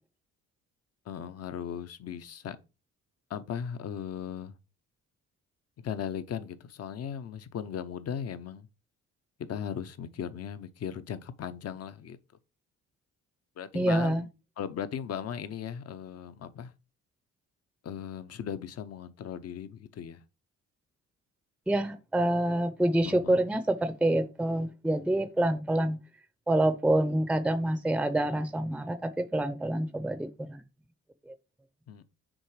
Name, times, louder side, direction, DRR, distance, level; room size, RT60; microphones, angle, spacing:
voice 1, 1.1-2.6 3.3-4.5 5.8-8.7 9.5-12.2 13.6-14.2 14.6-16.7 17.8-20.2 23.0-23.4 31.9-32.0, left 8 dB, 55° left, 0.8 m, -37 dB
voice 2, 13.7-14.2 21.7-26.0 26.5-30.6 31.3-31.4, right 1 dB, 5° right, 0.6 m, -27 dB
6.3 x 3.9 x 4.7 m
cardioid pair, 90°, 30 cm